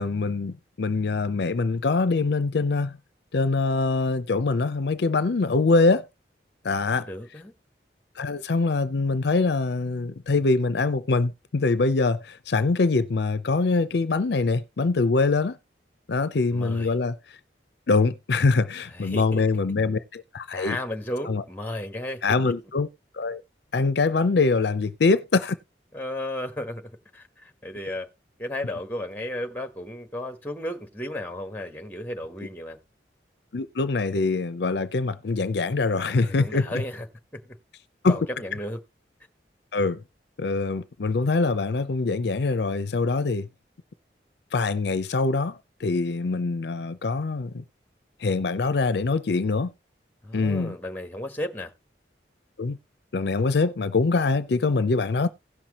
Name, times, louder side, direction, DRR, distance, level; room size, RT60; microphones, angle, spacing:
voice 1, 0.0-3.0 3.3-6.1 6.6-7.1 8.2-15.6 16.1-17.2 17.9-20.8 21.2-21.4 22.2-22.9 23.1-23.4 23.7-25.6 33.5-36.7 38.0-38.2 39.7-40.0 40.4-43.5 44.5-47.6 48.2-49.7 50.3-50.8 52.6-52.8 53.1-55.3, left 3 dB, 65° left, 0.5 m, -24 dB
voice 2, 6.9-7.5 16.5-16.9 18.9-19.4 20.5-22.5 25.9-28.1 28.4-32.8 36.1-37.0 37.3-37.6 38.1-38.8 50.2-51.7, left 1 dB, 10° left, 1.2 m, -34 dB
16.5 x 5.9 x 3.0 m
head